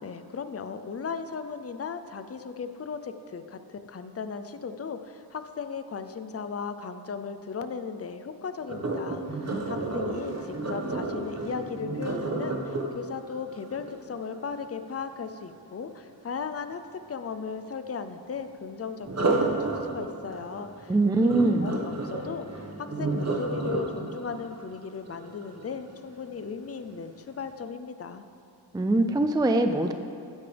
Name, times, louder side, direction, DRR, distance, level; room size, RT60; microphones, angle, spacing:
voice 1, 0.0-20.9 21.2-22.5 22.8-28.2, left 5 dB, 35° left, 10 dB, 0.6 m, -37 dB
Sink (filling or washing), 8.7-14.6 19.0-26.1 26.6-26.9 27.4-27.5, right 3 dB, 35° right, 1.4 m, -32 dB
voice 2, 20.9-21.7 28.7-29.9, right 2 dB, 10° right, 7 dB, 0.4 m, -22 dB
15.5 x 9.9 x 3.4 m, 2.5 s
wide cardioid pair, 90°, 44 cm